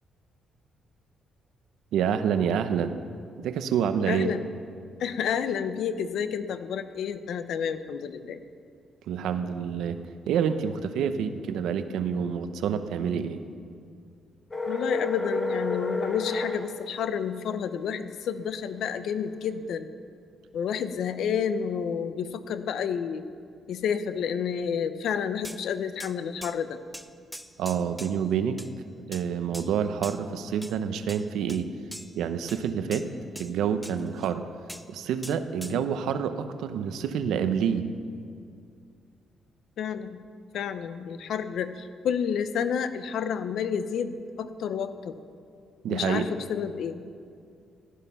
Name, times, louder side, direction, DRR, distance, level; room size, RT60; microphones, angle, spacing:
voice 1, 1.9-2.9 3.4-4.3 9.1-13.4 27.6-28.6 29.1-31.7 32.2-33.1 33.4-34.4 34.9-37.9 45.8-46.3, right 8 dB, 85° right, 10 dB, 0.8 m, -28 dB
voice 2, 4.1-4.5 5.0-8.4 14.7-19.9 20.5-23.2 23.7-26.8 32.9-33.0 35.6-35.8 39.8-40.2 40.5-45.1 45.9-47.0, left 7 dB, 65° left, 11 dB, 0.7 m, -30 dB
sound 1, 14.5-16.6, left 3 dB, 15° left, 1.5 m, -30 dB
sound 2, 25.4-25.6 26.0-26.1 26.4-26.6 26.9-28.3 28.6-28.7 29.1-29.3 29.5-30.2 30.6-30.8 31.1-31.6 31.9-32.2 32.5-33.5 33.8-34.3 34.7-34.9 35.2-35.8, equal, ahead, 0.5 m, -43 dB
15.0 x 11.5 x 5.7 m, 2.3 s
cardioid pair, 160°, 0 cm